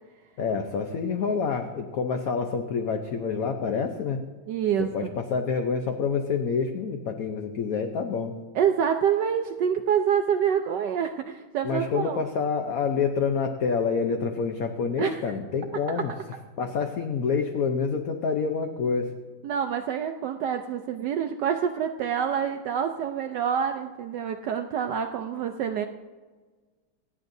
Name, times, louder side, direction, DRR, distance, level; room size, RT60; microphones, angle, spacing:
voice 1, 0.4-4.2 4.8-8.3 11.6-16.1 16.6-19.1, left 5 dB, 60° left, 5 dB, 0.9 m, -27 dB
voice 2, 4.5-5.1 8.5-12.2 15.0-15.2 15.9-16.2 19.4-25.9, right 8 dB, 70° right, 6 dB, 1.0 m, -27 dB
27.0 x 9.9 x 2.7 m, 1.4 s
omnidirectional pair, 2.3 m